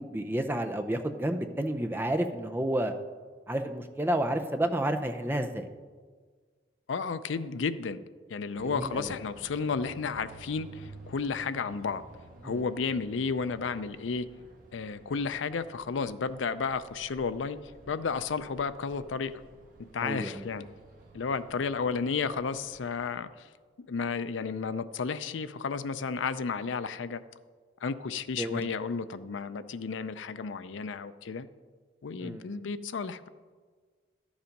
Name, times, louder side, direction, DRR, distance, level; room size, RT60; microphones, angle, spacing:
voice 1, 0.0-2.9 3.5-5.7 8.6-9.1 12.4-12.6 20.0-20.4 28.4-28.7 32.2-32.6, right 1 dB, 10° right, 6 dB, 0.5 m, -31 dB
voice 2, 6.9-8.0 8.3-12.0 12.4-14.3 14.7-17.6 17.9-19.3 19.9-20.7 21.1-23.5 23.8-27.2 27.8-31.5 32.0-33.3, left 5 dB, 85° left, 13 dB, 0.5 m, -32 dB
sound 1, 8.6-23.1, right 2 dB, 45° right, 1.4 m, -53 dB
11.5 x 7.2 x 5.2 m, 1.5 s
head